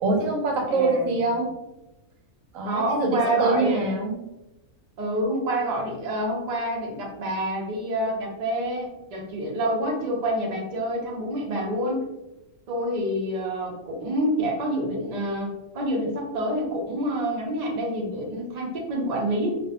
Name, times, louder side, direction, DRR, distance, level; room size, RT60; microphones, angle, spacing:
voice 1, 0.0-1.5 2.5-4.1, right 3 dB, 75° right, 2 dB, 1.0 m, -24 dB
voice 2, 0.7-1.1 2.6-3.8 5.0-12.0 12.7-19.5, right 1 dB, 55° right, -1 dB, 0.4 m, -27 dB
2.4 x 2.1 x 2.8 m, 0.96 s
omnidirectional pair, 1.4 m